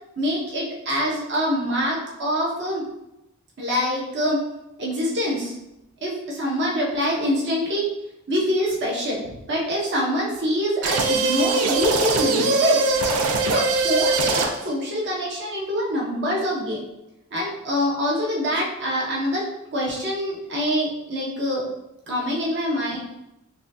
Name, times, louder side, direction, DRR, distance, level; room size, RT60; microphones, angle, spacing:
voice 1, 0.2-2.8 3.6-4.4 4.8-5.5 6.0-7.9 8.3-12.8 13.4-16.8 17.3-21.6 22.1-23.0, equal, 55° right, -4 dB, 0.9 m, -25 dB
sound 1, 10.8-14.7, right 3 dB, 80° right, 0.5 m, -21 dB
5.9 x 2.3 x 2.7 m, 0.89 s
head